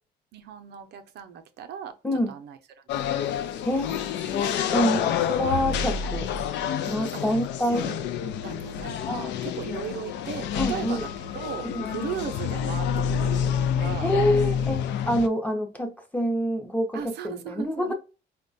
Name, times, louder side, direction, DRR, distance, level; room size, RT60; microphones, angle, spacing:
voice 1, 0.3-1.9 2.3-2.6 3.0-3.3 4.8-5.3 5.5-5.8 6.4-6.5 7.1-7.2 7.7-8.0 8.4-11.1 11.3-14.1 16.9-17.9, right 8 dB, 70° right, 0.5 m, -37 dB
voice 2, 2.0-2.4 3.6-6.3 6.8-7.9 9.1-9.4 10.5-11.1 11.6-11.9 14.0-17.9, equal, 10° left, 0.6 m, -27 dB
sound 1, 2.9-15.3, left 8 dB, 90° left, 0.4 m, -28 dB
4.7 x 2.2 x 2.5 m
cardioid pair, 145°, 18 cm